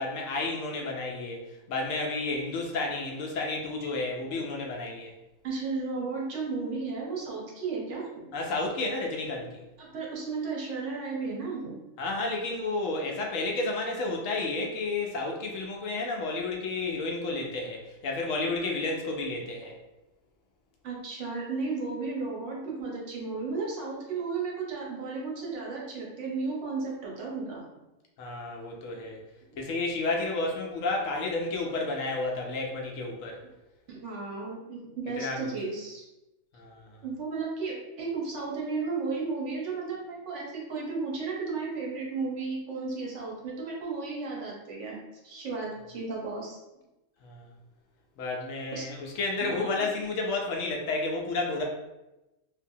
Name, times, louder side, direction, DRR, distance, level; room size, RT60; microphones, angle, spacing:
voice 1, 0.0-1.4 1.7-5.1 8.3-9.6 12.0-19.7 28.2-29.2 29.6-33.4 35.2-35.5 36.5-36.9 47.2-47.5 48.2-51.6, left 3 dB, 80° left, 0 dB, 1.0 m, -31 dB
voice 2, 5.4-8.0 9.8-11.8 20.8-27.6 33.9-36.1 37.0-45.0 45.2-46.6 48.7-48.8 49.4-49.6, right 4 dB, 70° right, -3 dB, 1.1 m, -34 dB
2.8 x 2.6 x 2.6 m, 0.98 s
omnidirectional pair, 1.3 m